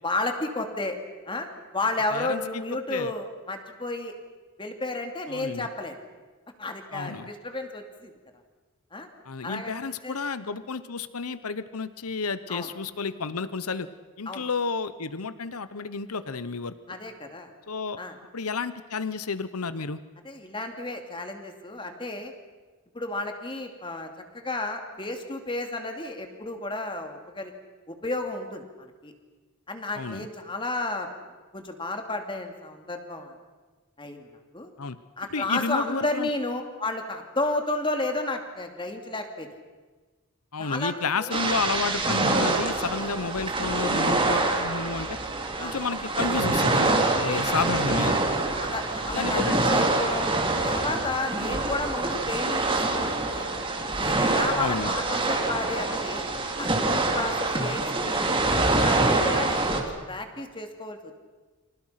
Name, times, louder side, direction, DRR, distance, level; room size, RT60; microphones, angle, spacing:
voice 1, 0.0-1.0 1.3-1.5 1.7-4.1 4.6-6.0 6.6-8.1 8.9-9.1 9.4-10.2 12.5-12.7 14.3-14.5 16.9-17.5 18.0-18.2 20.2-22.3 22.9-24.1 24.3-27.5 27.9-29.1 29.7-31.1 31.5-33.3 34.0-34.7 35.2-39.5 40.6-40.9 41.2-41.3 44.3-44.6 45.6-45.8 47.2-47.7 48.5-50.3 50.6-53.5 54.0-56.3 56.6-58.4 58.7-61.2, left 2 dB, 25° left, 5 dB, 2.7 m, -32 dB
voice 2, 5.3-5.7 6.9-7.3 9.3-13.9 14.2-17.0 17.7-18.0 18.3-20.0 30.0-30.2 34.8-35.0 35.3-36.3 40.5-45.1 45.6-48.2 49.1-49.6 54.5-54.9, left 4 dB, 85° left, 14 dB, 1.0 m, -31 dB
sound 1, 41.3-59.8, right 2 dB, 25° right, 3.2 m, -25 dB
30.0 x 26.5 x 5.9 m, 1.3 s
head